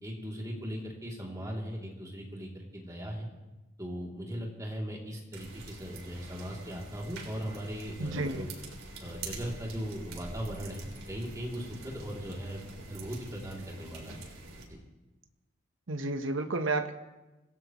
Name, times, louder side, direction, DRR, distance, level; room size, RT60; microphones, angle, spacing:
voice 1, 0.0-3.3 3.8-8.5 9.0-12.6 12.9-14.2, equal, 15° right, -2 dB, 3.0 m, -38 dB
sound 1, 5.3-14.7, right 2 dB, 90° right, 3.9 m, -45 dB
voice 2, 8.0-8.4 15.9-16.9, right 2 dB, 70° right, 7 dB, 1.1 m, -31 dB
26.0 x 17.5 x 3.1 m, 1.0 s
head